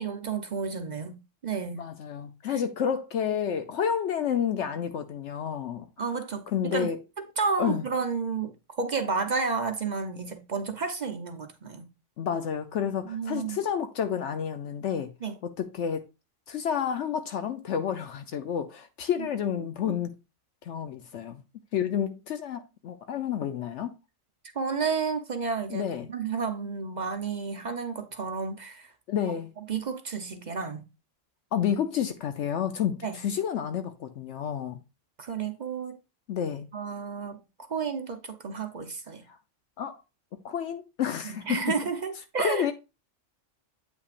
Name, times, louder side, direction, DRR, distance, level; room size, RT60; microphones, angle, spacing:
voice 1, 0.0-1.8 2.5-2.6 6.0-6.9 7.2-11.9 13.1-13.6 15.2-15.3 19.2-19.3 24.5-28.9 29.7-30.8 33.0-33.2 35.2-36.0 36.7-37.4 37.7-39.2 41.2-42.7, right 5 dB, 45° right, 0.7 m, -31 dB
voice 2, 1.7-5.9 6.5-7.0 7.6-7.8 12.2-15.1 15.4-16.0 16.5-20.1 20.6-21.4 21.7-23.9 25.7-26.1 29.1-29.5 31.5-34.8 36.3-36.7 39.8-40.0 40.4-41.4 42.4-42.7, left 8 dB, 70° left, 0.9 m, -30 dB
8.2 x 5.7 x 2.4 m
omnidirectional pair, 1.3 m